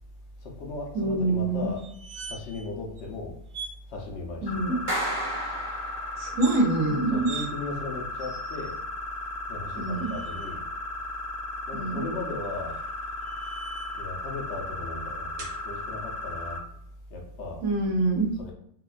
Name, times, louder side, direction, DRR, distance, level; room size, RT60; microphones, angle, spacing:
voice 1, 0.4-1.8 2.3-3.3 3.9-4.9 7.1-8.8 9.5-10.6 11.7-12.8 14.0-16.6 17.1-17.6 18.4-18.5, left 2 dB, 55° left, 0 dB, 0.9 m, -36 dB
voice 2, 0.9-1.7 4.4-4.7 6.2-7.3 9.8-10.1 11.7-12.0 17.6-18.3, right 2 dB, 65° right, 1 dB, 1.1 m, -25 dB
sound 1, 1.8-2.7 3.0-3.1 3.5-3.8 6.2-6.6 7.2-7.5 8.2-8.8 9.7-10.5 12.4-14.0 15.4-15.6, right 5 dB, 85° right, 1.1 m, -42 dB
sound 2, 4.5-16.6, left 2 dB, 85° left, 0.4 m, -36 dB
Clapping, 4.9-6.5, right 1 dB, 30° right, 0.6 m, -32 dB
3.8 x 2.4 x 2.4 m, 0.72 s
omnidirectional pair, 1.5 m